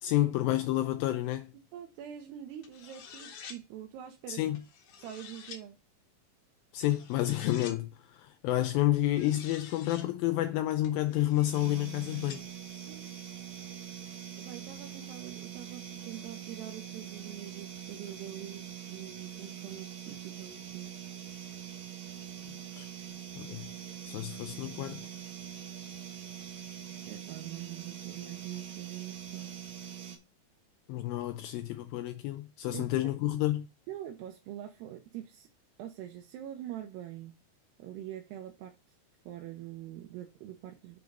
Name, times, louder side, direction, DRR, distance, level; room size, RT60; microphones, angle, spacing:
voice 1, 0.0-1.5 4.3-4.6 6.7-12.4 22.8-22.9 23.4-23.7 24.1-25.0 30.9-33.7, left 14 dB, 85° left, 2.1 m, -30 dB
voice 2, 1.7-4.5 5.0-5.8 12.8-13.1 14.4-20.9 27.0-29.5 32.7-33.1 33.9-35.5 35.8-37.4 37.8-38.7 39.3-41.0, right 11 dB, 80° right, 2.9 m, -44 dB
sound 1, 2.6-3.6 4.5-5.6 6.8-7.8 8.9-10.1 10.8-12.4, left 7 dB, 65° left, 2.3 m, -49 dB
sound 2, 11.5-30.2, right 9 dB, 60° right, 2.0 m, -44 dB
8.2 x 4.0 x 5.2 m
omnidirectional pair, 4.7 m